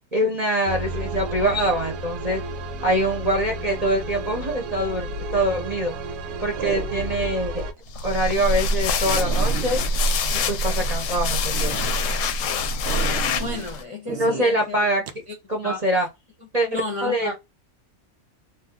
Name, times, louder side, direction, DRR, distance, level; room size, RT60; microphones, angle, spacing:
voice 1, 0.1-2.4 2.8-5.9 6.4-7.5 7.9-9.8 10.3-11.8 14.1-15.0 15.5-16.1 16.5-17.4, right 1 dB, 35° right, 0.8 m, -24 dB
sound 1, 0.7-7.7, right 1 dB, 90° right, 1.1 m, -32 dB
sound 2, 5.0-5.4 6.6-7.3 7.8-7.9 8.4-8.5 8.7-8.8 9.1-11.1 11.5-11.9 12.9-13.7 14.1-14.5 15.1-15.2, right 8 dB, 65° right, 0.6 m, -34 dB
sound 3, 7.9-13.8, left 2 dB, 70° left, 0.8 m, -24 dB
voice 2, 13.4-14.9 15.3-15.4 15.6-15.8 16.7-17.4, left 2 dB, 30° left, 0.6 m, -32 dB
2.6 x 2.4 x 3.6 m
omnidirectional pair, 1.5 m